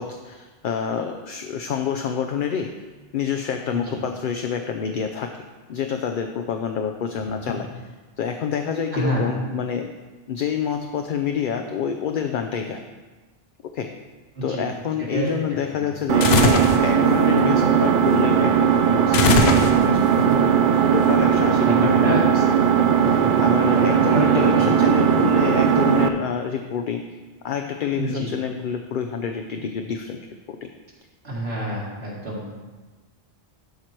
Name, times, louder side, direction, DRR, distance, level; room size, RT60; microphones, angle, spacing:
voice 1, 0.0-2.7 3.1-5.3 5.7-7.7 8.2-9.9 10.3-12.8 13.7-13.9 14.4-20.5 20.9-22.4 23.4-27.0 27.4-30.2 30.5-30.7, left 7 dB, 60° left, 5 dB, 0.7 m, -27 dB
voice 2, 7.2-7.5 8.9-9.3 14.4-14.7 15.0-15.3 15.7-15.9 20.3-20.4 20.8-20.9 21.6-22.2 23.0-23.4 23.7-24.8 27.9-28.3 31.2-32.6, right 1 dB, 75° right, -5 dB, 2.4 m, -28 dB
Engine, 16.1-26.1, right 8 dB, 60° right, 0.6 m, -18 dB
sound 1, 16.2-16.8 19.1-20.1, left 4 dB, 80° left, 1.0 m, -19 dB
12.0 x 4.6 x 4.4 m, 1.3 s
omnidirectional pair, 1.1 m